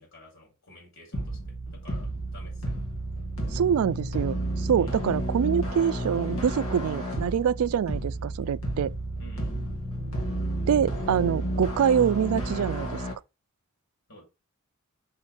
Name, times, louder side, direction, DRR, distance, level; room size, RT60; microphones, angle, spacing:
voice 1, 0.0-1.4 1.7-2.8 4.8-5.1 9.2-9.6 14.1-14.2, left 1 dB, 60° left, 4.3 m, -51 dB
sound 1, 1.1-13.1, right 1 dB, 75° left, 2.3 m, -31 dB
voice 2, 3.5-8.9 10.7-13.0, right 8 dB, 75° right, 0.3 m, -25 dB
5.6 x 4.5 x 5.9 m
head